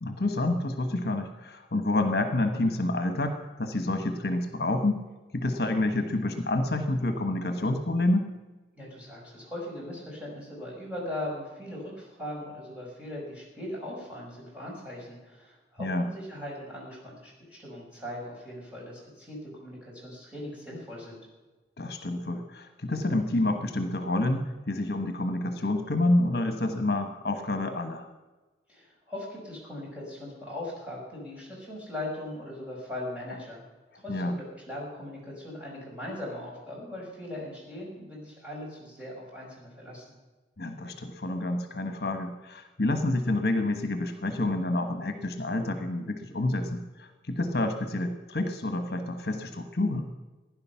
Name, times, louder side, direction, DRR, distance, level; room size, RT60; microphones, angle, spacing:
voice 1, 0.0-5.0 5.3-8.3 15.8-16.1 21.8-28.1 34.1-34.3 40.6-50.1, left 2 dB, 60° left, 7 dB, 1.3 m, -28 dB
voice 2, 8.8-21.2 28.7-33.6 33.9-40.0, left 1 dB, 5° right, -4 dB, 5.5 m, -39 dB
15.5 x 11.0 x 5.8 m, 1.2 s
head